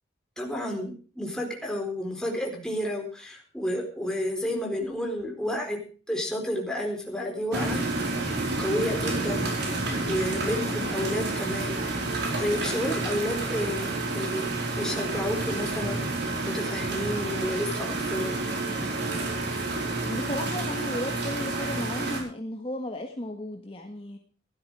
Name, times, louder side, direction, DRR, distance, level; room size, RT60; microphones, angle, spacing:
voice 1, 0.4-5.8 6.1-7.8 8.6-9.5 10.0-12.0 12.4-18.4, equal, 5° left, 0 dB, 4.2 m, -31 dB
sound 1, 7.5-22.2, right 2 dB, 65° right, 4.7 m, -29 dB
voice 2, 20.1-24.2, left 1 dB, 30° left, 3 dB, 1.6 m, -34 dB
16.0 x 12.5 x 4.8 m, 0.40 s
head